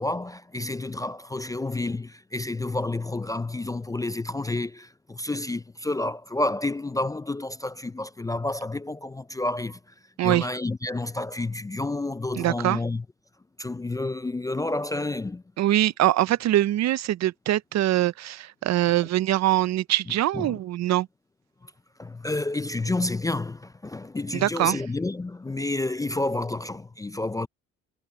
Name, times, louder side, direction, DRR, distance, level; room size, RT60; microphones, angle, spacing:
voice 1, 0.0-9.8 10.2-13.0 13.6-15.4 20.3-20.6 21.6-21.7 22.0-27.5, left 2 dB, 10° left, 0.3 m, -30 dB
voice 2, 12.4-12.8 15.6-21.1 24.3-24.8, right 14 dB, 60° right, 0.5 m, -23 dB
cardioid pair, 90°, 30 cm